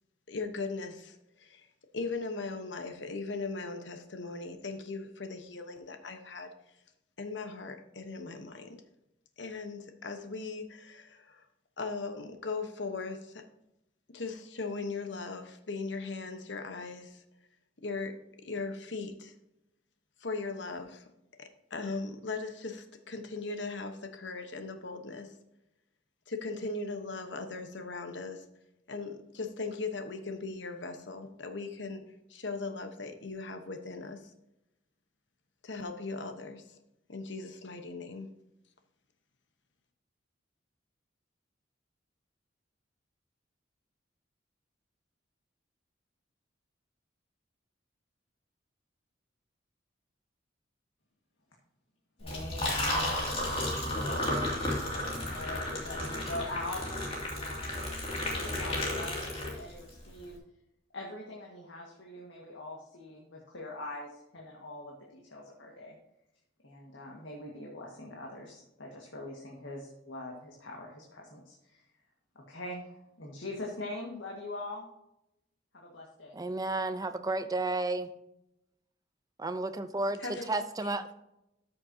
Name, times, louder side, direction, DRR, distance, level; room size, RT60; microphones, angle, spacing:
voice 1, 0.3-1.7 1.9-6.5 7.2-8.8 9.4-11.4 11.8-13.4 14.1-17.2 17.8-18.2 18.4-19.3 20.2-21.0 21.4-25.3 26.3-28.4 28.9-32.0 32.3-34.3 35.6-36.8 37.1-38.3 80.2-80.9, left 3 dB, 70° left, 7 dB, 1.1 m, -38 dB
voice 2, 52.2-53.5 53.8-54.5 55.2-57.8 58.1-60.4 60.9-66.0 66.6-71.8 72.4-74.9 75.7-76.4, left 2 dB, 85° left, -1 dB, 1.7 m, -43 dB
Liquid, 52.2-59.9, left 1 dB, 30° left, 2.5 m, -33 dB
voice 3, 76.3-78.1 79.4-81.0, right 2 dB, 20° right, 10 dB, 0.6 m, -32 dB
13.5 x 6.8 x 2.8 m, 0.86 s
head